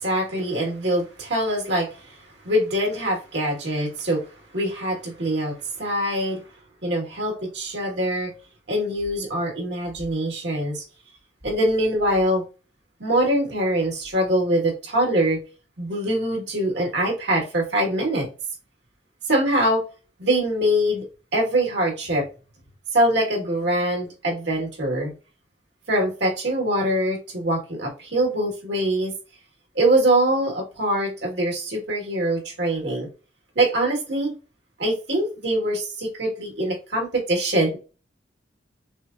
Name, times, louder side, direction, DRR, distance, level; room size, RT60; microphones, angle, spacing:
voice 1, 0.0-2.2 2.4-4.3 4.5-6.4 6.8-8.3 8.7-10.9 11.4-12.4 13.0-15.4 15.8-18.3 19.3-19.8 20.2-21.1 21.3-22.3 22.9-25.1 25.9-29.1 29.8-33.1 33.6-34.3 34.8-37.8, right 1 dB, 65° right, 1.7 m, -23 dB
6.1 x 2.0 x 2.5 m
head